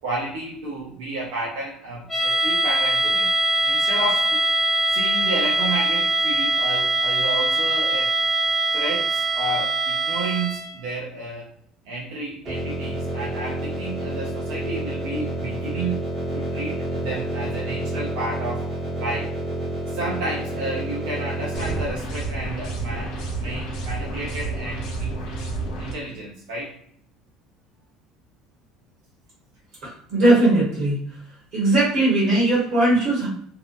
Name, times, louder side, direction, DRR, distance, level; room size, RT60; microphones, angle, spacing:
voice 1, 0.0-3.3 3.6-4.4 4.9-8.1 8.7-11.5 11.8-18.7 19.0-19.3 19.9-25.2 25.8-26.8, right 2 dB, 80° right, -5 dB, 0.6 m, -31 dB
sound 1, 2.1-10.8, right 2 dB, 10° left, 0.5 m, -22 dB
sound 2, 12.5-21.8, right 1 dB, 20° right, 0.7 m, -29 dB
sound 3, 21.5-25.9, right 3 dB, 55° left, 0.7 m, -30 dB
voice 2, 29.8-31.0 31.5-33.3, right 2 dB, 50° right, -6 dB, 1.0 m, -19 dB
2.7 x 2.1 x 2.4 m, 0.63 s
cardioid pair, 165°, 0 cm